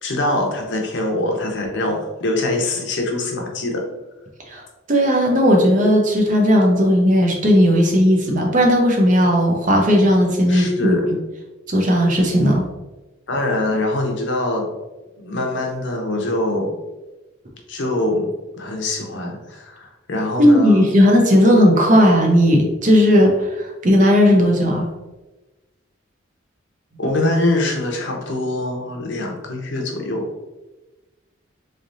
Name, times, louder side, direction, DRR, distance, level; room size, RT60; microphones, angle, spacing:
voice 1, 0.0-3.8 10.5-11.1 13.3-14.7 15.2-16.8 17.7-18.3 18.5-20.9 27.0-30.3, left 2 dB, 65° left, 1 dB, 0.8 m, -23 dB
voice 2, 4.9-11.2 11.7-12.7 20.4-24.9, equal, 40° right, 1 dB, 0.6 m, -15 dB
3.8 x 3.3 x 2.6 m, 1.1 s
head